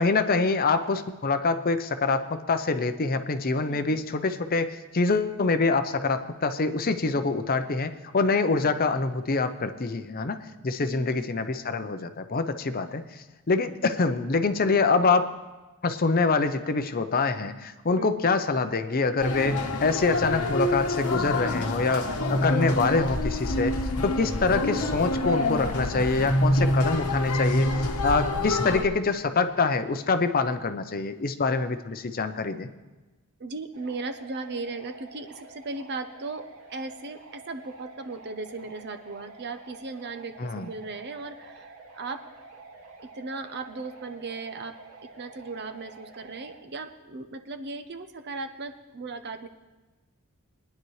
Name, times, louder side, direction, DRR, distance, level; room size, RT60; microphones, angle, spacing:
voice 1, 0.0-15.3 15.8-23.8 24.0-32.7 40.4-40.7, left 4 dB, 40° left, 9 dB, 0.6 m, -25 dB
voice 2, 18.0-18.3 33.4-42.3 43.0-44.8 45.0-49.5, right 3 dB, 50° right, 8 dB, 0.8 m, -37 dB
sound 1, 19.2-28.8, left 1 dB, 80° left, 1.2 m, -27 dB
sound 2, 33.7-46.6, right 3 dB, 70° right, 2.0 m, -49 dB
21.5 x 10.5 x 3.2 m, 1.2 s
head